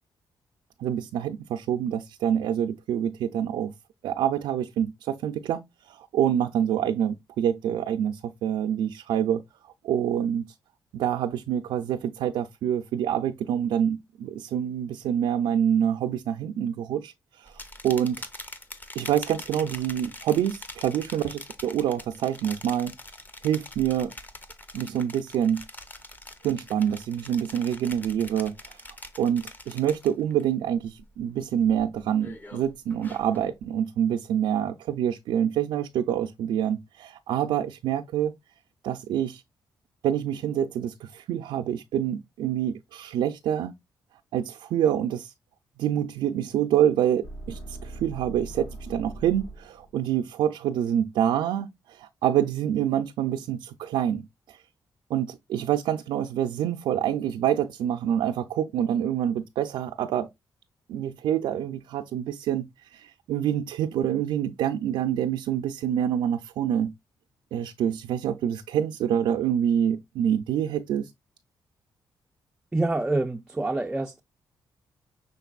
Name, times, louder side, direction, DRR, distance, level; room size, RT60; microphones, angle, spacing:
voice 1, 0.8-3.7 4.0-5.6 5.9-9.4 9.8-10.5 10.9-17.1 17.4-17.5 17.8-18.2 19.0-22.9 23.4-24.1 24.7-25.6 26.4-28.8 29.2-38.3 38.8-39.4 40.0-43.7 44.3-45.3 45.8-54.6 55.1-60.3 60.9-66.9 67.5-71.1, right 10 dB, 90° right, 0.4 m, -26 dB
sound 1, 17.5-30.4 30.8-31.2 31.6-33.5, left 2 dB, 20° left, 0.7 m, -44 dB
sound 2, 47.2-50.1, right 2 dB, 65° left, 1.3 m, -41 dB
voice 2, 72.7-74.2, right 2 dB, 10° right, 0.3 m, -26 dB
5.9 x 3.8 x 2.3 m
cardioid pair, 115°, 8 cm